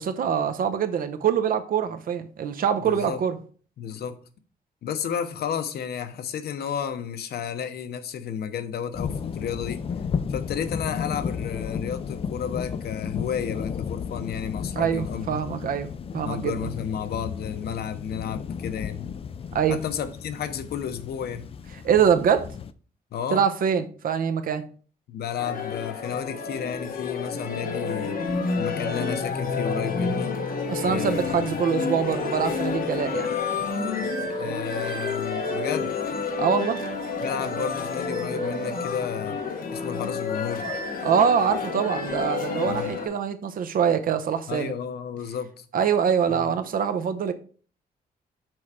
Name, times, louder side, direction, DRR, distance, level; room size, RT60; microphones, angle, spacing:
voice 1, 0.0-3.4 14.8-16.7 19.5-19.8 21.8-22.5 23.3-24.6 30.7-33.3 36.4-36.8 41.0-44.7 45.7-47.3, right 7 dB, 60° right, 0.7 m, -24 dB
voice 2, 2.8-3.2 3.8-4.2 4.8-9.9 10.3-15.4 16.2-19.1 19.7-21.5 23.1-23.4 25.1-28.2 28.6-30.4 30.8-31.5 34.4-35.9 37.2-39.4 39.7-40.7 42.6-42.9 44.5-45.7 46.3-46.4, left 8 dB, 85° left, 0.8 m, -32 dB
sound 1, 8.9-22.7, left 6 dB, 35° left, 0.3 m, -33 dB
sound 2, 25.4-43.1, left 4 dB, 65° left, 1.3 m, -29 dB
6.2 x 4.5 x 4.8 m
wide cardioid pair, 175°, 16 cm